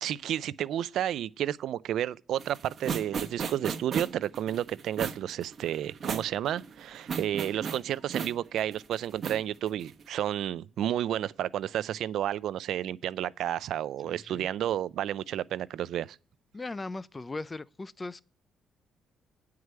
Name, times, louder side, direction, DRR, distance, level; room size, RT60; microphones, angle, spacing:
voice 1, 0.0-16.2, right 11 dB, 75° right, 0.4 m, -31 dB
sound 1, 2.4-10.0, right 6 dB, 50° right, 1.0 m, -36 dB
voice 2, 14.0-14.5 16.5-18.2, left 3 dB, 25° left, 0.4 m, -38 dB
9.4 x 4.8 x 7.6 m
cardioid pair, 90°, 0 cm